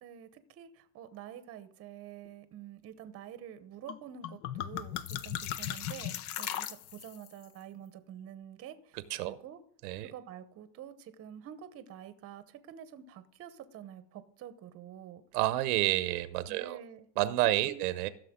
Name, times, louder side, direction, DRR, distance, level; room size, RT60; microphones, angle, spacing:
voice 1, 0.0-9.0 9.2-9.6 10.0-15.2 16.5-17.1 17.6-17.8, right 10 dB, 30° right, 12 dB, 0.9 m, -48 dB
sound 1, 3.9-4.0 4.2-7.3, left 11 dB, 30° left, 0.4 m, -37 dB
voice 2, 15.3-16.8 17.2-18.1, right 16 dB, 65° right, 14 dB, 0.9 m, -29 dB
15.5 x 6.6 x 3.7 m, 0.65 s
supercardioid pair, 125°, 49 cm